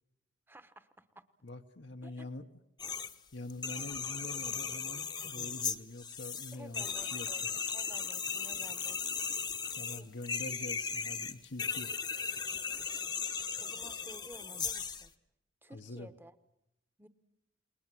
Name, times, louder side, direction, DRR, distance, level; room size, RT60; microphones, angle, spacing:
voice 1, 0.5-1.2 2.0-2.3 6.5-9.3 9.8-10.1 13.6-15.1 15.6-16.3 17.0-17.1, right 1 dB, 10° right, 12 dB, 1.0 m, -54 dB
voice 2, 1.4-2.4 3.3-7.3 9.8-11.9 15.7-16.1, left 2 dB, 70° left, 5 dB, 1.0 m, -45 dB
sound 1, 2.8-3.2 3.5-15.1, left 6 dB, 25° left, 0.9 m, -37 dB
29.0 x 20.5 x 7.6 m, 0.84 s
head